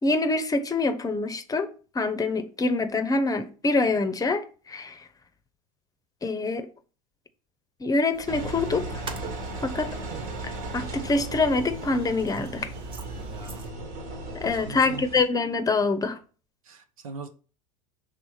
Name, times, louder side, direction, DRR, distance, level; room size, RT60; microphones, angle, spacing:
voice 1, 0.0-5.1 6.2-6.7 7.8-9.0 9.6-10.0 10.4-12.7 14.3-16.2, left 3 dB, 20° left, 0.7 m, -25 dB
sound 1, 8.1-13.7, right 3 dB, 30° right, 1.0 m, -44 dB
Engine, 8.3-15.3, right 2 dB, 55° right, 1.5 m, -36 dB
voice 2, 13.0-13.7 14.5-15.1 16.6-17.3, right 4 dB, 80° right, 0.8 m, -41 dB
5.5 x 3.6 x 4.7 m
hypercardioid pair, 80°, 18 cm